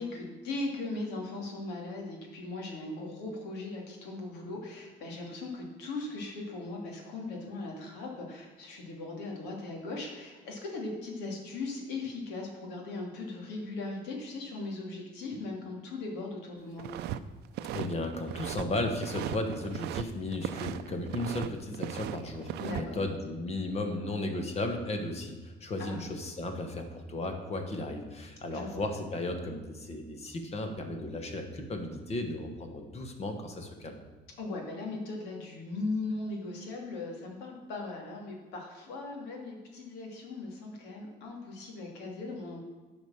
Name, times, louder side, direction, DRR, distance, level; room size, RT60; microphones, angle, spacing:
voice 1, 0.0-16.9 22.6-23.0 25.8-26.0 28.5-28.8 34.4-42.6, left 2 dB, 90° left, 0 dB, 2.6 m, -38 dB
sound 1, 16.8-17.2 17.4-18.7 19.0-20.0 20.3-21.5 21.7-22.8, right 11 dB, 75° right, 0.5 m, -37 dB
voice 2, 17.7-34.0, left 2 dB, 40° left, 5 dB, 1.6 m, -35 dB
10.5 x 5.2 x 7.2 m, 1.3 s
cardioid pair, 110°, 17 cm